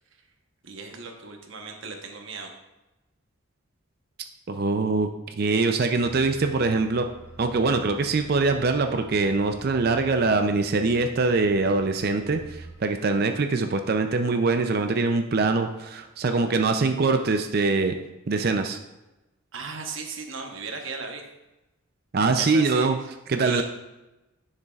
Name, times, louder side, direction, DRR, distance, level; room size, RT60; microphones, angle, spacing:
voice 1, 0.6-2.5 19.5-21.2 22.4-23.6, right 4 dB, 65° right, 3 dB, 1.0 m, -37 dB
voice 2, 4.5-5.1 5.4-7.1 7.4-18.0 18.3-18.8 22.1-23.0 23.3-23.6, right 3 dB, 45° right, 7 dB, 0.4 m, -23 dB
sound 1, 6.0-12.7, right 2 dB, 15° right, 1.7 m, -46 dB
10.0 x 6.6 x 2.4 m, 1.0 s
head